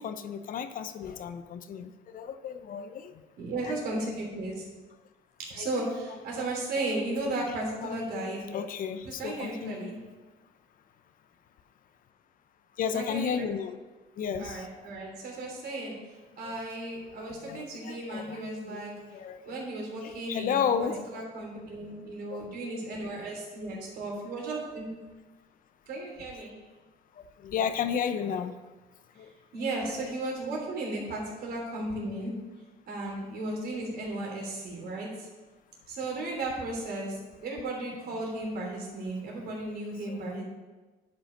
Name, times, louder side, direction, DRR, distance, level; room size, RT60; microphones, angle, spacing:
voice 1, 0.0-3.1 3.6-4.1 5.6-6.2 7.0-7.6 7.8-9.9 12.8-13.8 14.2-14.7 16.4-16.6 17.2-19.4 20.0-21.2 22.3-22.5 27.4-28.6 29.2-29.3 29.6-30.1 38.1-38.2 39.4-39.5 40.0-40.4, left 7 dB, 55° left, 10 dB, 0.7 m, -34 dB
voice 2, 3.4-4.6 5.5-8.4 9.0-10.0 12.9-13.5 14.4-15.9 16.4-18.9 19.4-20.5 21.1-24.9 25.9-26.6 29.5-32.3 32.9-35.3 35.9-40.4, right 2 dB, 65° right, -1 dB, 3.2 m, -35 dB
10.0 x 5.6 x 5.2 m, 1.2 s
cardioid pair, 110°, 17 cm